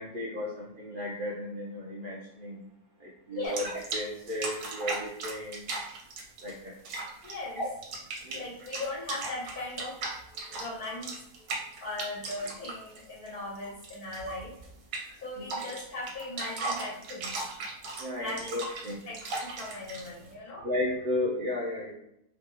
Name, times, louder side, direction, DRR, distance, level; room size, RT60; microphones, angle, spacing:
voice 1, 0.0-2.7 3.0-5.6 6.4-6.8 7.6-7.7 8.2-8.4 10.4-10.7 11.4-11.5 15.4-15.7 16.6-16.7 18.0-19.1 20.6-21.9, left 1 dB, 55° right, -5 dB, 0.6 m, -34 dB
voice 2, 3.3-3.6 7.2-7.6 8.3-10.0 10.5-11.1 11.8-14.5 15.2-17.5 18.2-18.5 19.1-20.7, left 2 dB, 80° left, -6 dB, 1.4 m, -38 dB
sound 1, 3.4-4.0 4.3-6.5 6.8-7.3 7.6-13.6 13.8-14.3 14.6-14.7 14.9-15.1 15.5-20.1, right 3 dB, 75° right, 1.2 m, -37 dB
3.1 x 2.2 x 2.8 m, 0.79 s
omnidirectional pair, 1.6 m